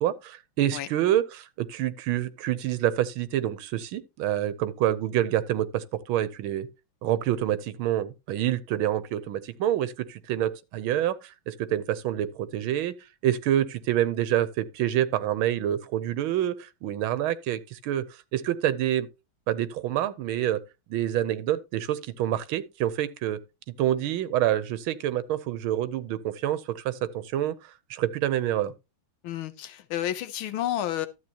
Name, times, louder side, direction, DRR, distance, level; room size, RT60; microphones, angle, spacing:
voice 1, 0.0-6.7 7.0-13.0 13.2-18.1 18.3-19.1 19.5-20.6 20.9-23.4 23.8-28.7, right 12 dB, 80° right, 1.6 m, -27 dB
voice 2, 29.2-31.1, left 12 dB, 80° left, 1.6 m, -30 dB
12.5 x 8.0 x 2.9 m
omnidirectional pair, 2.3 m